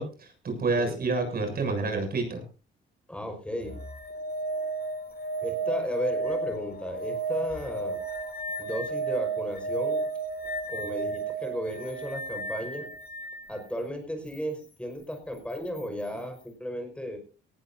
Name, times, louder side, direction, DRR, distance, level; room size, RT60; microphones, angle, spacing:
voice 1, 0.0-2.4, right 3 dB, 50° right, 5 dB, 7.3 m, -29 dB
voice 2, 3.1-3.8 5.4-8.0 8.6-10.0 10.7-12.9 13.5-17.2, equal, 5° left, 5 dB, 5.3 m, -34 dB
sound 1, 3.6-13.4 15.7-15.8, right 3 dB, 50° left, 2.2 m, -33 dB
19.0 x 15.5 x 2.7 m, 0.34 s
cardioid pair, 90°, 20 cm